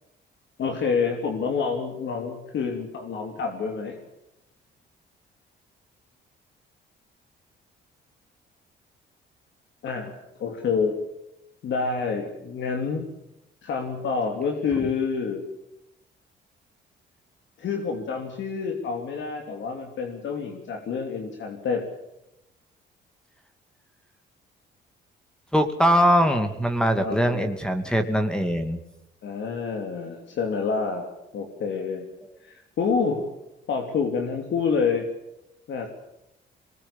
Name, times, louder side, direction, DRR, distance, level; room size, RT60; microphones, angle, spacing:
voice 1, 0.6-4.0 9.8-10.1 10.4-11.0 11.6-13.1 13.6-15.4 17.6-21.8 27.0-27.6 29.2-31.1 31.3-32.1 32.4-33.3 33.7-35.1 35.7-35.9, left 5 dB, 65° left, 3 dB, 3.1 m, -28 dB
voice 2, 25.5-28.8, equal, 5° left, 7 dB, 2.5 m, -22 dB
22.5 x 20.0 x 7.2 m, 0.87 s
cardioid pair, 90°, 20 cm